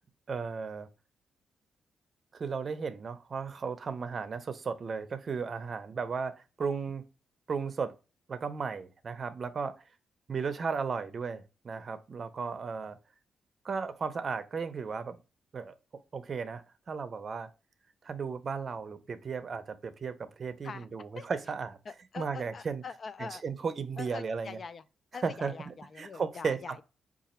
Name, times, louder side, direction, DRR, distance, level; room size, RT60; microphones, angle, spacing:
voice 1, 0.3-0.9 2.3-7.0 7.5-7.9 8.3-9.8 10.3-13.0 13.6-15.2 15.5-15.7 16.1-17.5 18.0-21.8 22.2-22.8 23.2-24.6 25.2-26.6, right 5 dB, 45° right, 0.6 m, -35 dB
voice 2, 21.9-23.4 24.0-24.9 25.1-26.8, left 5 dB, 45° left, 0.4 m, -44 dB
4.9 x 2.4 x 4.2 m
cardioid pair, 100°, 0 cm